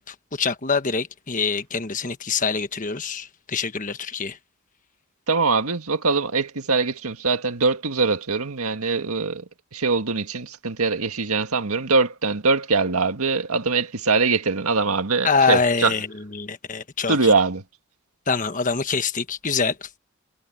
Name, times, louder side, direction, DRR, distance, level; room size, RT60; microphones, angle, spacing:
voice 1, 0.0-4.4 15.2-16.1 16.3-17.3 18.3-20.0, left 5 dB, 35° left, 1.3 m, -25 dB
voice 2, 5.3-9.4 9.7-15.9 17.1-17.6, right 4 dB, 85° right, 1.8 m, -22 dB
head